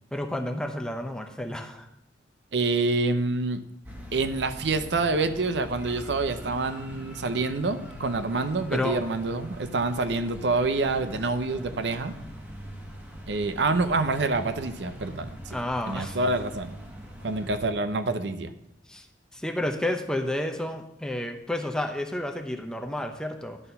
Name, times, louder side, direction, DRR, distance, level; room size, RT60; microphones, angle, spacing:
voice 1, 0.1-1.9 8.7-9.0 15.5-16.2 18.9-19.1 19.3-23.6, left 1 dB, 5° left, 4 dB, 0.7 m, -30 dB
voice 2, 2.5-3.6 4.1-12.2 13.3-15.6 15.9-16.7 17.2-18.5, right 3 dB, 70° right, 10 dB, 0.6 m, -27 dB
sound 1, 3.8-17.7, equal, 10° right, 1.3 m, -42 dB
11.0 x 4.4 x 5.4 m, 0.80 s
head